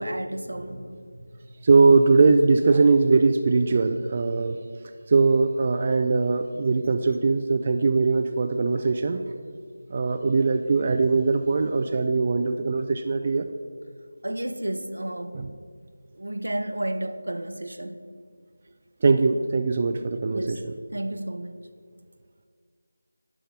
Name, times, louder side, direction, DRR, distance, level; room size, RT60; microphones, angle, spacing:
voice 1, 0.0-1.5 14.2-15.4 16.1-18.0 20.3-20.6 20.9-21.6, right 1 dB, 70° right, 0.7 m, -32 dB
voice 2, 1.6-4.6 5.1-9.2 9.9-13.5 15.3-15.5 19.0-20.6, right 4 dB, 30° right, 0.3 m, -21 dB
11.0 x 3.7 x 6.8 m
figure-of-eight pair, 165°, 0 cm